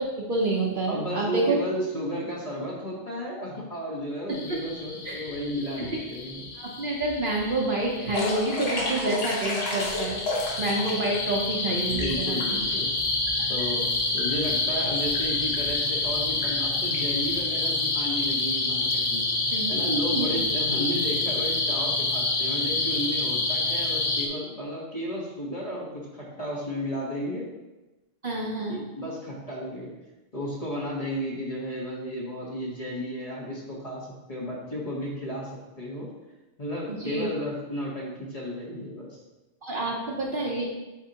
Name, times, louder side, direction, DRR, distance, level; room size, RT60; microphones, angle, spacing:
voice 1, 0.0-1.6 5.0-5.3 5.8-5.9 6.6-12.6 13.4-13.5 19.5-19.8 20.1-20.3 28.2-28.8 37.0-37.3 39.6-40.6, right 2 dB, 50° right, -2 dB, 1.0 m, -28 dB
voice 2, 0.9-6.5 11.9-12.9 13.5-13.8 14.1-19.3 19.7-25.9 26.1-27.4 28.7-29.9 30.3-35.5 35.8-36.1 36.6-39.2, equal, 30° left, -5 dB, 1.4 m, -33 dB
sound 1, 4.3-24.3, left 3 dB, 75° left, 1.2 m, -28 dB
sound 2, 8.1-11.2 11.5-12.7 13.3-13.4 13.6-13.9 14.2-14.3 15.0-15.2 15.5-15.8 16.4-16.5 16.9-17.0, left 2 dB, 55° left, 1.4 m, -31 dB
8.4 x 4.6 x 2.9 m, 1.1 s
omnidirectional pair, 1.2 m